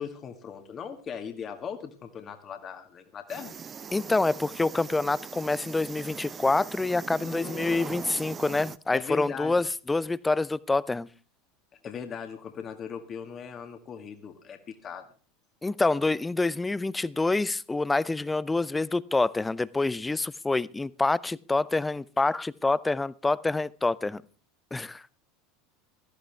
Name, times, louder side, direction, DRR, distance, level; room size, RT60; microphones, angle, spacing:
voice 1, 0.0-3.5 7.2-8.0 8.9-9.6 11.8-15.0, left 7 dB, 35° left, 1.8 m, -39 dB
sound 1, 3.3-8.8, right 6 dB, 25° right, 0.6 m, -41 dB
voice 2, 3.9-11.1 15.6-24.2 24.7-25.0, left 3 dB, 10° left, 0.6 m, -27 dB
17.0 x 14.0 x 3.4 m
figure-of-eight pair, 80°, 0 cm